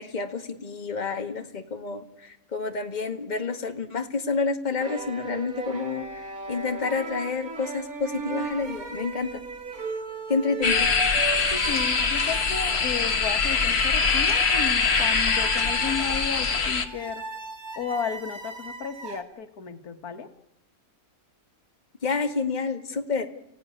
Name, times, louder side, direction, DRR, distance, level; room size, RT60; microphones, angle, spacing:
voice 1, 0.0-9.4 10.3-10.9 22.0-23.3, left 4 dB, 30° left, 5 dB, 1.7 m, -29 dB
sound 1, 4.8-19.2, right 3 dB, 75° right, 2.6 m, -37 dB
sound 2, 10.6-16.8, left 5 dB, 45° left, 1.6 m, -23 dB
voice 2, 11.5-17.3 17.8-20.3, left 7 dB, 85° left, 8 dB, 1.9 m, -33 dB
29.5 x 16.0 x 9.9 m, 0.92 s
omnidirectional pair, 1.5 m